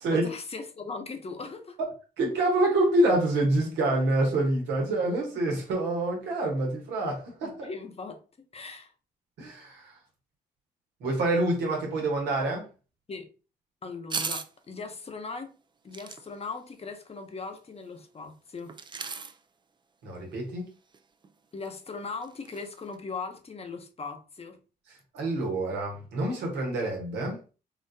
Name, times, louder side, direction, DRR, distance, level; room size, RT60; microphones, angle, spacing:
voice 1, 0.1-1.8 7.4-8.9 13.1-13.3 13.8-15.5 15.8-18.7 21.5-24.6, left 4 dB, 35° left, 0.8 m, -39 dB
voice 2, 2.2-7.6 9.4-10.0 11.0-12.6 20.0-20.7 25.1-27.4, right 2 dB, 90° right, 1.3 m, -26 dB
sound 1, 14.1-14.5 15.9-16.2 18.7-19.4 20.9-21.0 21.2-21.3 21.6-21.7 22.2-22.7 22.9-23.0, right 5 dB, 25° right, 0.4 m, -35 dB
3.8 x 2.5 x 2.7 m
supercardioid pair, 65°, 17 cm